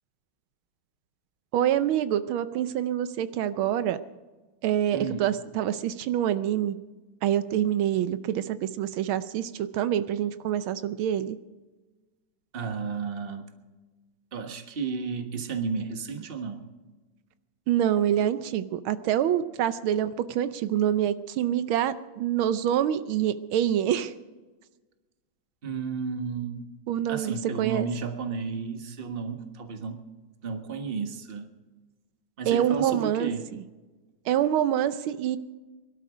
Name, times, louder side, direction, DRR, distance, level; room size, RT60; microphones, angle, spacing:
voice 1, 1.5-4.0 4.6-6.8 7.2-11.4 17.7-24.1 26.9-27.9 32.5-33.6 34.3-35.4, right 10 dB, 85° right, 12 dB, 1.5 m, -26 dB
voice 2, 4.9-5.3 12.5-13.5 14.3-16.7 25.6-26.7 27.1-30.0 30.4-31.5 32.4-33.5, right 5 dB, 30° right, 6 dB, 1.3 m, -33 dB
23.0 x 12.5 x 5.1 m, 1.2 s
omnidirectional pair, 2.2 m